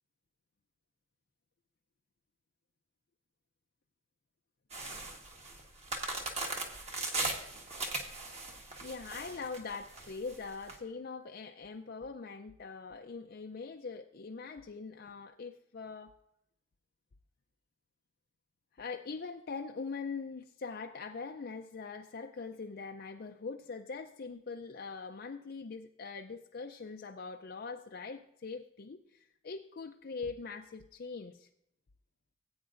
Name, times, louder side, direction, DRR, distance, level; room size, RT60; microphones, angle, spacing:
sound 1, 4.7-10.7, right 2 dB, 30° right, 1.4 m, -38 dB
voice 1, 8.8-16.1 18.8-31.5, left 4 dB, 50° left, 4 dB, 0.5 m, -42 dB
17.5 x 8.7 x 2.5 m, 0.77 s
head